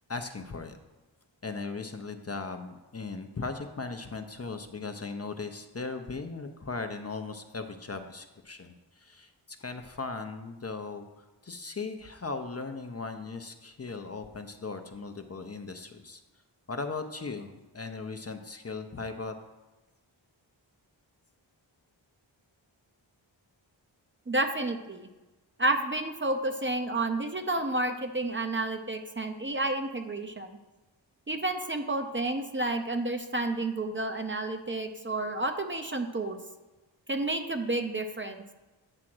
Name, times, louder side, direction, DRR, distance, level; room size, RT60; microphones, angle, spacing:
voice 1, 0.1-0.8 1.4-16.2 16.7-19.3, left 4 dB, 30° left, 6 dB, 0.7 m, -38 dB
voice 2, 24.3-25.1 25.6-30.5 31.3-36.4 37.1-38.4, right 2 dB, 25° right, 6 dB, 0.7 m, -30 dB
8.8 x 3.7 x 6.1 m, 1.1 s
cardioid pair, 40°, 47 cm